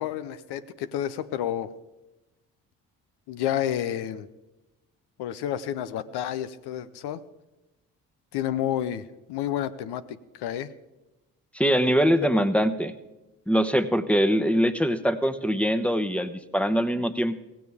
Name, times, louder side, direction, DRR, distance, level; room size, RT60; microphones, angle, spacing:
voice 1, 0.0-1.7 3.3-4.3 5.2-7.2 8.3-10.0 10.4-10.7 12.3-12.4, left 11 dB, 75° left, 13 dB, 0.8 m, -30 dB
voice 2, 11.5-12.9 13.5-17.4, equal, 5° left, 11 dB, 1.0 m, -23 dB
16.5 x 16.5 x 3.5 m, 1.0 s
supercardioid pair, 60°, 40 cm